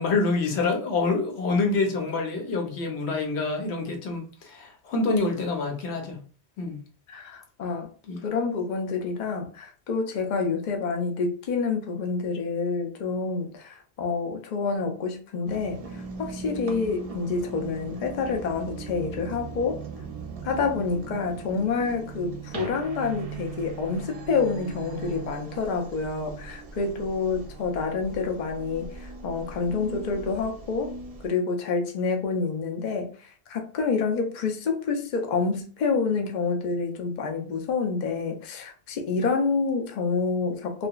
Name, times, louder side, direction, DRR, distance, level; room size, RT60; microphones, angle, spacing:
voice 1, 0.0-6.2 6.6-6.8 8.1-8.2, left 3 dB, 85° left, 1.0 m, -26 dB
voice 2, 7.1-7.9 8.2-19.8 20.4-30.9 31.2-40.9, left 4 dB, 55° left, 0.6 m, -28 dB
sound 1, 15.5-31.3, right 5 dB, 50° right, 0.4 m, -39 dB
2.8 x 2.4 x 2.2 m
omnidirectional pair, 1.1 m